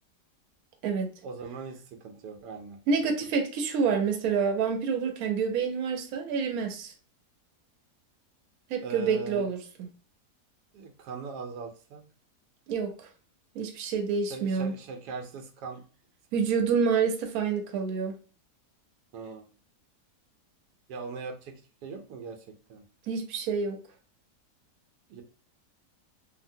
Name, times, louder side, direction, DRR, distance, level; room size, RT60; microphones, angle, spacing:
voice 1, 1.2-2.8 8.8-9.4 10.7-12.0 14.3-15.8 19.1-19.4 20.9-22.8 25.1-25.2, right 4 dB, 90° right, 1.2 m, -40 dB
voice 2, 2.9-6.9 8.7-9.6 12.7-13.1 13.5-14.7 16.3-18.1 23.1-23.8, right 5 dB, 70° right, 1.1 m, -28 dB
2.8 x 2.5 x 2.6 m
omnidirectional pair, 1.7 m